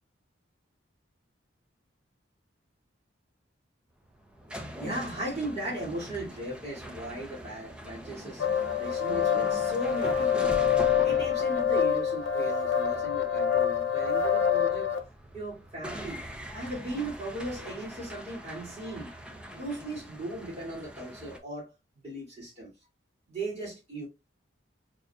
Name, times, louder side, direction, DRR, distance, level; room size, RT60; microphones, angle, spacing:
sound 1, 3.9-21.4, equal, 5° right, 0.4 m, -43 dB
voice 1, 4.8-8.5 8.8-10.6 11.0-14.9 15.3-16.2 16.5-19.2 19.6-21.7 22.0-22.7 23.3-24.1, right 1 dB, 35° right, 2.2 m, -37 dB
sound 2, 8.4-15.0, left 8 dB, 85° left, 0.7 m, -26 dB
5.2 x 2.5 x 2.2 m
head